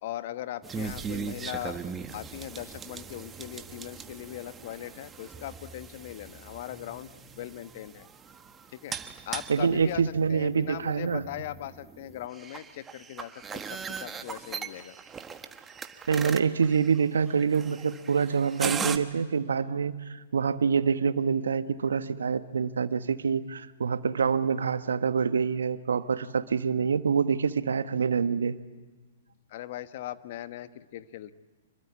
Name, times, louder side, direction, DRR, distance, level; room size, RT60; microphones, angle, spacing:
voice 1, 0.0-1.8 2.1-7.1 7.3-8.1 8.7-8.9 9.3-10.0 10.3-14.9 29.5-31.3, left 13 dB, 55° left, 12 dB, 1.2 m, -39 dB
sound 1, 0.6-19.0, right 6 dB, 15° right, 1.4 m, -39 dB
voice 2, 9.5-11.2 16.1-28.6, right 6 dB, 75° right, 12 dB, 1.2 m, -26 dB
26.0 x 23.0 x 8.5 m, 1.3 s
hypercardioid pair, 115°, 0 cm